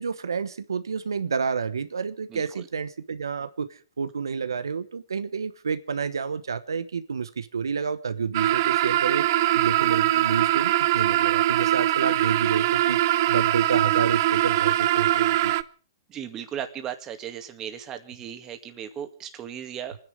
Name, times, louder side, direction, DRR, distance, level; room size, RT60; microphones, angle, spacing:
voice 1, 0.0-3.7 4.0-9.3 9.5-15.6, right 6 dB, 90° right, 12 dB, 1.1 m, -29 dB
sound 1, 8.3-15.6, right 14 dB, 50° right, 0.7 m, -22 dB
voice 2, 16.1-20.0, right 9 dB, 25° right, 7 dB, 2.2 m, -36 dB
25.5 x 10.5 x 5.2 m, 0.41 s
hypercardioid pair, 130°, 2 cm